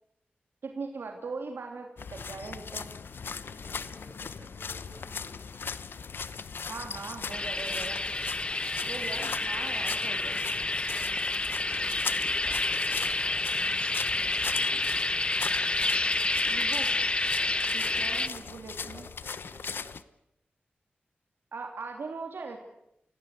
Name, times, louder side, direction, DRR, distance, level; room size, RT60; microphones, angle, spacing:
voice 1, 0.6-2.9 6.7-8.0 8.9-10.4 16.4-16.9 17.7-19.1 21.5-22.6, right 4 dB, 85° right, 3 dB, 3.0 m, -40 dB
sound 1, 2.0-20.0, left 5 dB, 80° left, 0.9 m, -39 dB
voice 2, 3.4-5.4 9.0-9.3 11.4-13.7 14.1-15.1 17.4-20.0, right 1 dB, 40° right, 4 dB, 6.6 m, -54 dB
sound 2, 7.3-18.3, left 2 dB, 30° left, 0.9 m, -29 dB
27.5 x 17.5 x 8.4 m, 0.80 s
wide cardioid pair, 90°, 4 cm